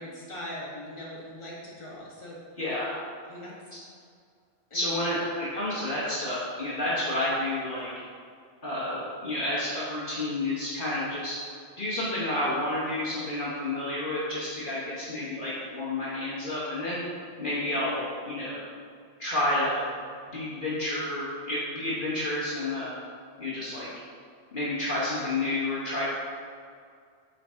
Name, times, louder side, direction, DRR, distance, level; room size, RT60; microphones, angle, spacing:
voice 1, 0.0-2.4 3.3-3.5 4.7-5.0 6.9-7.0, left 1 dB, 30° left, -6 dB, 1.4 m, -41 dB
voice 2, 2.6-3.0 3.7-3.8 4.7-7.9 8.6-11.3 11.8-17.1 17.4-18.6 19.2-23.0 23.4-23.9 24.5-26.0, left 1 dB, 50° left, -8 dB, 1.2 m, -30 dB
8.4 x 3.9 x 3.5 m, 2.2 s
omnidirectional pair, 1.1 m